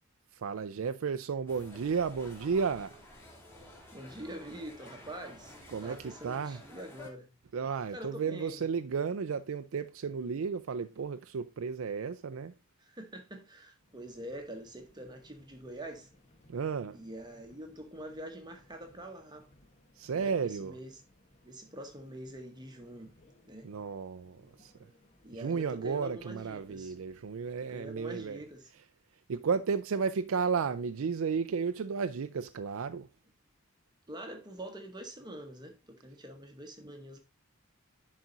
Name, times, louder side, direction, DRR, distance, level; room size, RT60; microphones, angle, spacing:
voice 1, 0.3-3.0 5.7-6.7 7.5-12.5 16.5-17.0 19.9-20.8 23.6-24.9 25.3-28.4 28.7-28.9 29.3-33.1, right 5 dB, 75° right, 0.4 m, -33 dB
sound 1, 1.5-7.1, left 1 dB, 10° left, 2.4 m, -52 dB
voice 2, 3.9-5.5 5.8-7.3 7.9-8.6 12.8-16.1 16.9-19.5 20.1-20.9 21.4-23.1 23.4-23.7 24.4-24.7 25.2-26.9 27.6-28.7 34.1-37.2, right 1 dB, 20° right, 1.0 m, -45 dB
Subway metro underground, 13.8-28.6, left 1 dB, 35° left, 1.1 m, -64 dB
11.0 x 4.2 x 3.8 m
head